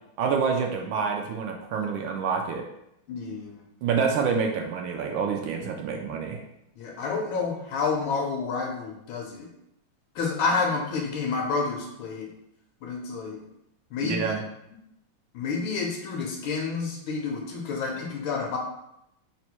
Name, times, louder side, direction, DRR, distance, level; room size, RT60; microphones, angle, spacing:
voice 1, 0.2-2.6 3.8-6.4 14.1-14.4, right 5 dB, 75° right, 2 dB, 1.3 m, -27 dB
voice 2, 3.1-3.6 6.8-9.5 10.1-12.3 12.8-13.4 13.9-14.3 15.3-18.6, left 4 dB, 75° left, 0 dB, 1.4 m, -29 dB
4.1 x 2.1 x 4.4 m, 0.81 s
omnidirectional pair, 2.4 m